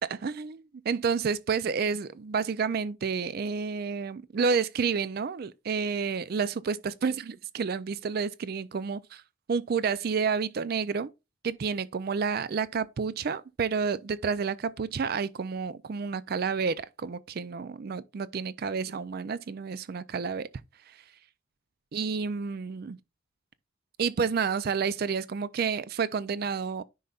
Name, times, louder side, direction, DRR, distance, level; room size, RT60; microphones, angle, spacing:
voice 1, 0.0-9.2 9.5-11.1 11.4-20.5 20.8-21.0 21.9-23.0 24.0-26.8, right 5 dB, 50° right, 0.4 m, -30 dB
10.0 x 5.5 x 2.4 m
head